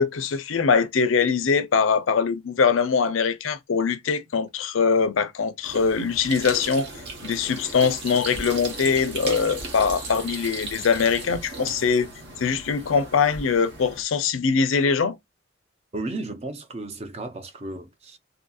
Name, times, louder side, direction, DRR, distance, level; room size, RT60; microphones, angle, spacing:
voice 1, 0.0-6.9 7.2-12.1 12.4-15.2, left 5 dB, 85° left, 0.5 m, -22 dB
sound 1, 5.6-14.0, right 2 dB, 60° right, 1.0 m, -36 dB
voice 2, 15.9-18.2, right 2 dB, 30° right, 0.5 m, -34 dB
2.7 x 2.7 x 2.3 m
head